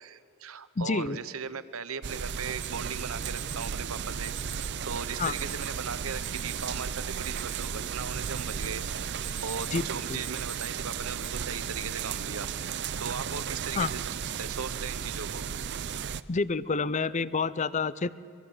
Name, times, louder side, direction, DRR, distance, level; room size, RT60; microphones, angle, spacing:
voice 1, 0.0-14.1 14.4-15.4, right 5 dB, 80° right, 13 dB, 1.1 m, -38 dB
voice 2, 0.8-1.2 5.2-5.3 9.7-10.2 13.7-13.9 16.3-18.1, left 4 dB, 35° left, 18 dB, 0.6 m, -28 dB
sound 1, 2.0-16.2, right 7 dB, 55° right, 0.6 m, -34 dB
Alarm, 2.6-2.7 3.2-3.7 4.2-4.7 5.2-5.7 6.2-6.7 7.1-7.8 8.2-8.7 9.1-9.8 10.2-10.7 11.2-11.3 12.1-12.5, right 9 dB, 10° right, 1.4 m, -43 dB
25.0 x 22.5 x 7.9 m, 2.4 s
head